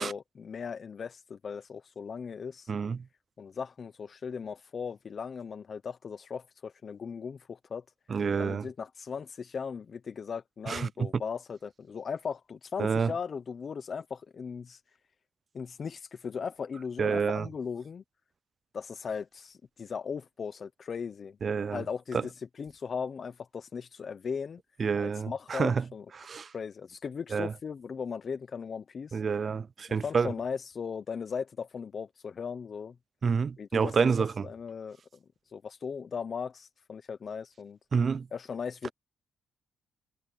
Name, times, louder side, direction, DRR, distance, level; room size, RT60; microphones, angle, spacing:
voice 1, 0.0-2.7 3.4-7.8 8.4-14.8 15.5-18.0 18.7-24.6 25.0-26.1 26.5-29.2 29.9-32.9 33.6-35.0 35.5-37.8 38.3-38.9, left 6 dB, 45° left, 0.9 m, -38 dB
voice 2, 2.7-3.0 8.1-8.6 10.7-10.9 12.8-13.1 17.0-17.5 21.4-21.8 24.8-25.8 26.2-26.5 27.3-27.5 29.1-30.3 33.2-34.5 37.9-38.3, right 5 dB, 40° right, 0.4 m, -28 dB
cardioid pair, 90°, 0 cm